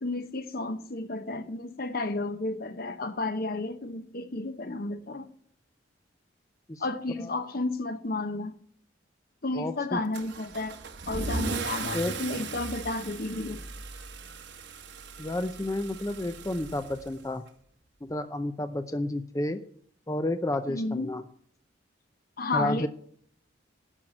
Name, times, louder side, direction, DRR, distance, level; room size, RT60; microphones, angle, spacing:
voice 1, 0.0-5.3 6.8-8.6 9.4-10.8 11.1-13.6 20.7-21.1 22.4-22.9, left 2 dB, 50° left, 1.0 m, -32 dB
voice 2, 9.5-10.0 11.9-12.1 15.2-17.4 18.0-19.6 20.1-21.2 22.5-22.9, left 1 dB, 15° left, 0.5 m, -31 dB
Car / Engine starting / Accelerating revving vroom, 10.1-17.5, right 3 dB, 65° right, 1.1 m, -37 dB
11.0 x 5.9 x 8.8 m
head